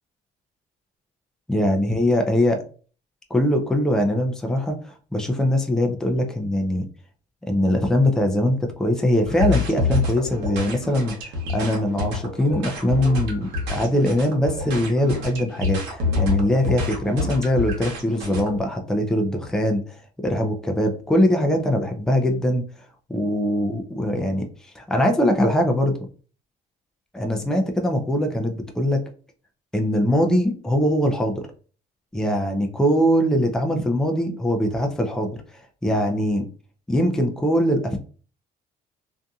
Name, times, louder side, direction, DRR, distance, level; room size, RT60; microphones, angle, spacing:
voice 1, 1.5-2.6 3.3-6.8 7.5-22.6 23.1-26.0 27.1-29.0 29.7-31.5 32.1-35.4 35.8-36.5 36.9-38.0, equal, 5° left, 4 dB, 0.4 m, -22 dB
sound 1, 9.2-18.5, left 3 dB, 85° right, 1.0 m, -27 dB
2.6 x 2.5 x 2.3 m, 0.39 s
cardioid pair, 110°, 17 cm